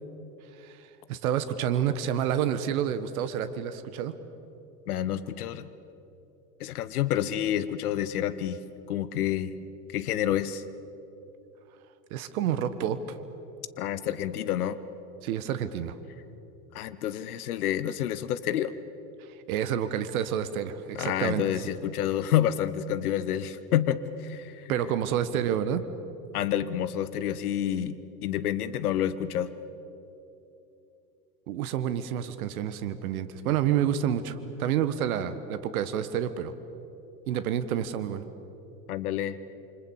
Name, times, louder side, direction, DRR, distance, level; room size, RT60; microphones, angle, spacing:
voice 1, 0.6-4.1 12.1-13.2 15.2-16.0 19.2-21.4 24.7-25.8 31.5-36.5 37.3-38.2, right 9 dB, 65° right, 12 dB, 1.6 m, -29 dB
voice 2, 4.9-5.7 6.6-8.6 8.9-9.5 9.9-10.6 13.8-14.8 16.7-18.7 20.9-24.7 26.3-29.5 38.9-39.4, left 11 dB, 70° left, 15 dB, 1.1 m, -28 dB
28.5 x 25.5 x 7.3 m, 3.0 s
figure-of-eight pair, 85°, 46 cm